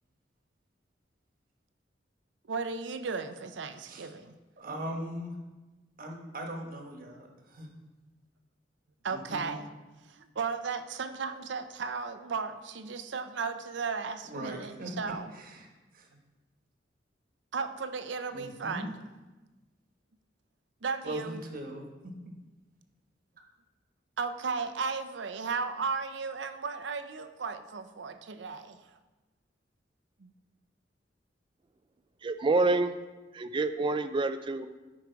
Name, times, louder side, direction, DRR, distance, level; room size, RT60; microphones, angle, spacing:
voice 1, 2.5-4.3 9.0-9.7 10.1-15.3 17.5-18.9 20.8-21.4 24.2-28.8 30.2-30.3, right 5 dB, 75° right, 9 dB, 0.6 m, -35 dB
voice 2, 4.6-5.4 6.0-7.7 9.1-9.5 14.2-14.9 15.3-15.7 15.9-16.2 18.3-18.9 21.0-21.9, right 1 dB, 50° right, 2 dB, 1.3 m, -40 dB
voice 3, 32.2-32.9 33.3-34.7, right 3 dB, 25° right, 10 dB, 0.4 m, -27 dB
10.5 x 4.8 x 4.6 m, 1.2 s
head